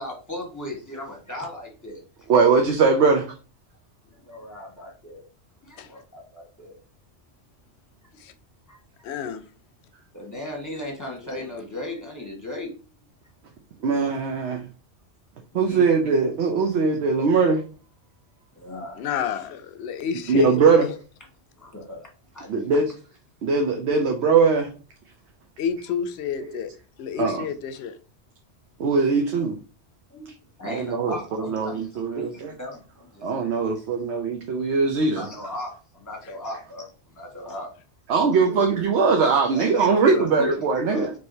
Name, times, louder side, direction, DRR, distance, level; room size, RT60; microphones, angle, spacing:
voice 1, 0.0-2.0 4.1-5.2 5.6-6.8 8.7-9.1 10.1-12.9 15.5-15.9 18.5-19.1 20.6-20.7 21.6-22.1 22.3-22.7 30.1-30.3 30.6-33.8 35.0-37.7 38.2-38.6 39.2-41.1, left 1 dB, 15° left, 1.2 m, -37 dB
voice 2, 2.3-3.2 13.8-14.7 15.5-17.6 20.3-20.9 22.5-22.9 23.4-24.7 27.2-27.4 28.8-29.6 30.6-32.5 33.2-35.2 38.1-41.1, right 4 dB, 75° right, 0.9 m, -21 dB
voice 3, 9.0-9.5 18.9-20.9 25.6-26.7 27.0-27.9 37.4-37.5, left 7 dB, 70° left, 0.8 m, -30 dB
4.6 x 3.0 x 2.7 m
omnidirectional pair, 1.2 m